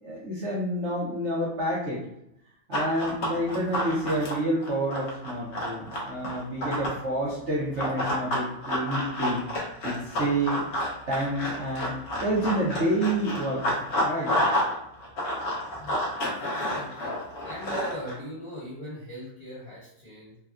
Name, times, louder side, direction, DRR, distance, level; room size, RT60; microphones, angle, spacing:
voice 1, 0.0-2.0 2.7-9.4 9.8-10.6 11.1-14.3, right 1 dB, 60° right, -6 dB, 0.7 m, -29 dB
Run, 2.7-7.0 7.8-14.7 15.0-18.1, equal, 70° left, 0.6 m, -29 dB
voice 2, 15.8-16.1 16.5-17.2 17.4-20.4, right 1 dB, 20° left, -11 dB, 1.0 m, -39 dB
3.3 x 2.1 x 2.4 m, 0.79 s
omnidirectional pair, 2.0 m